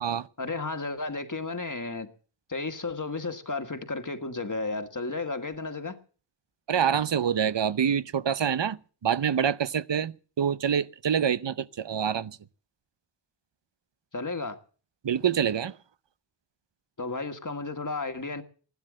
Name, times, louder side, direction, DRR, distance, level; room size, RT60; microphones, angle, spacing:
voice 1, 0.4-2.1 2.5-6.0 14.1-14.6 17.0-18.4, left 3 dB, 45° left, 1.6 m, -33 dB
voice 2, 6.7-12.4 15.0-15.7, right 8 dB, 75° right, 0.7 m, -26 dB
15.5 x 12.0 x 7.5 m
wide cardioid pair, 70°, 44 cm